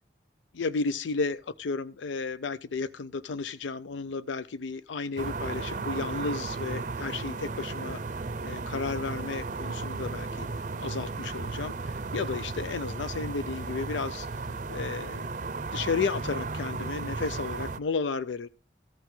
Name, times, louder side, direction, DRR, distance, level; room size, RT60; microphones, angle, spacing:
voice 1, 0.5-8.0 8.4-15.3 15.7-18.5, left 4 dB, 85° left, 0.5 m, -33 dB
sound 1, 5.2-17.8, right 3 dB, 45° right, 0.5 m, -35 dB
14.5 x 5.9 x 5.4 m
head